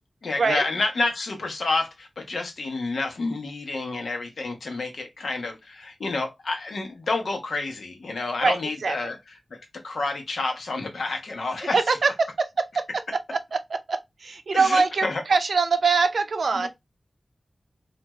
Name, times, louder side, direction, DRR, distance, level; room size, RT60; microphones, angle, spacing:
voice 1, 0.2-9.2 9.5-11.7 14.5-15.2 16.6-16.7, left 3 dB, 85° left, 0.9 m, -29 dB
voice 2, 8.4-9.1 11.7-16.7, right 4 dB, 80° right, 0.4 m, -24 dB
2.5 x 2.3 x 3.0 m
wide cardioid pair, 65°, 0 cm